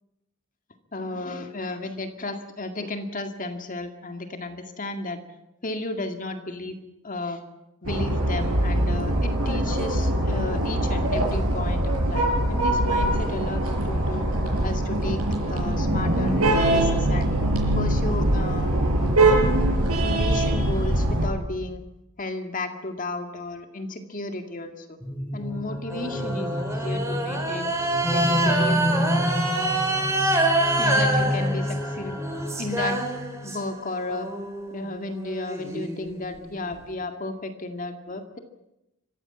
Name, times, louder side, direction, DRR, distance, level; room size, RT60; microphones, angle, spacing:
voice 1, 0.9-5.2 5.6-6.7 7.0-7.4 7.8-14.2 14.6-15.2 15.5-17.4 17.7-18.7 19.0-19.2 20.0-21.8 22.2-25.0 25.3-27.7 28.1-28.9 30.8-32.2 32.6-33.0 33.4-34.3 34.7-38.4, left 2 dB, 40° left, 6 dB, 2.0 m, -33 dB
sound 1, 7.8-21.3, right 1 dB, 85° right, 6.0 m, -23 dB
sound 2, 25.0-33.4, equal, 10° left, 1.3 m, -29 dB
sound 3, 25.9-33.7 34.1-36.7, right 1 dB, 15° right, 4.2 m, -26 dB
24.5 x 15.5 x 8.9 m, 0.93 s
head